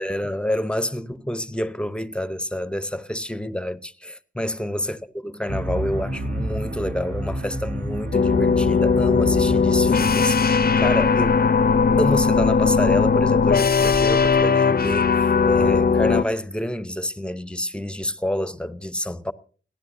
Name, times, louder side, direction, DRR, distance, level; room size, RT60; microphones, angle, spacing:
voice 1, 0.0-11.4 12.0-19.3, left 1 dB, 5° left, 0.7 m, -28 dB
sound 1, 5.5-14.5, right 1 dB, 75° right, 2.0 m, -31 dB
sound 2, 8.1-16.2, left 5 dB, 55° left, 0.6 m, -19 dB
30.0 x 10.5 x 2.6 m
wide cardioid pair, 95°, 19 cm